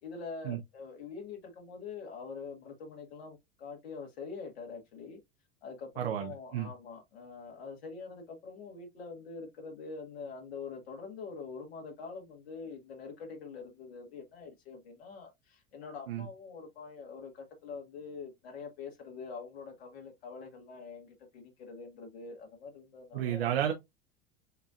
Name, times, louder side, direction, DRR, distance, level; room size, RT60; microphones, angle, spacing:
voice 1, 0.0-5.2 5.6-23.5, left 4 dB, 80° left, 1.8 m, -45 dB
voice 2, 6.0-6.7 16.1-16.3 23.1-23.7, right 10 dB, 80° right, 0.9 m, -32 dB
7.8 x 2.8 x 2.4 m
hypercardioid pair, 85°, 30 cm